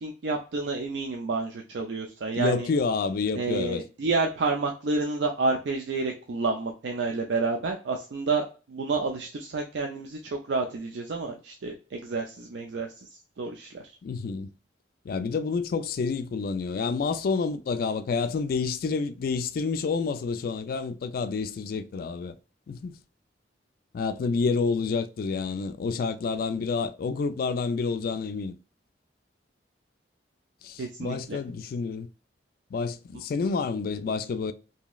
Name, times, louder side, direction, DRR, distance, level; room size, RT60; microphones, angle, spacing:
voice 1, 0.0-2.7 3.3-13.8 30.8-31.4, right 3 dB, 75° right, 0.4 m, -29 dB
voice 2, 2.3-3.8 14.0-14.5 15.1-22.3 22.7-22.9 23.9-28.6 30.6-32.1 32.7-34.5, left 4 dB, 55° left, 0.3 m, -29 dB
3.0 x 2.7 x 2.3 m
head